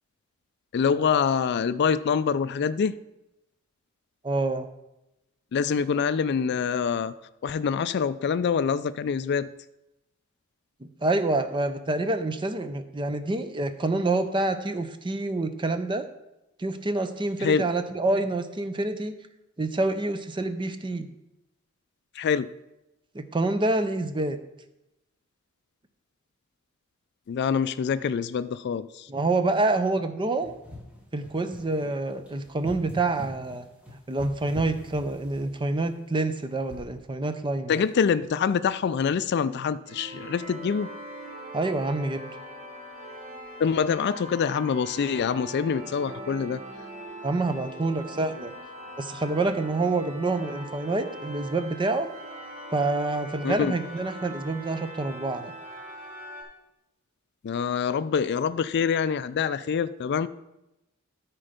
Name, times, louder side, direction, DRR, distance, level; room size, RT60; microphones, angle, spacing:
voice 1, 0.7-2.9 5.5-7.1 7.4-9.5 17.4-17.6 22.2-22.5 27.3-29.1 37.7-40.9 43.6-46.6 53.4-53.7 57.4-60.3, left 6 dB, 55° left, 14 dB, 0.3 m, -25 dB
voice 2, 4.2-4.7 10.8-16.1 16.6-19.1 19.6-21.1 23.1-24.4 29.1-30.5 31.1-37.7 41.5-42.2 47.2-48.5 49.0-52.1 52.7-55.5, right 2 dB, 25° right, 9 dB, 0.6 m, -27 dB
sound 1, 30.4-35.8 36.7-37.0, left 1 dB, 5° right, 1.4 m, -44 dB
sound 2, 39.8-56.4, right 1 dB, 50° right, 3.2 m, -41 dB
13.0 x 4.5 x 5.1 m, 0.90 s
head